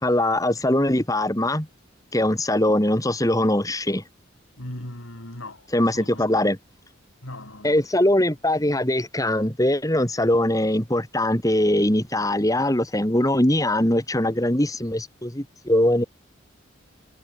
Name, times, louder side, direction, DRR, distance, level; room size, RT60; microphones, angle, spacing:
voice 1, 0.0-1.7 2.1-4.0 5.7-6.6 7.6-16.0, left 1 dB, 15° left, 3.0 m, -21 dB
voice 2, 4.6-5.7 5.9-6.3 7.2-7.7, left 1 dB, 90° left, 5.1 m, -38 dB
head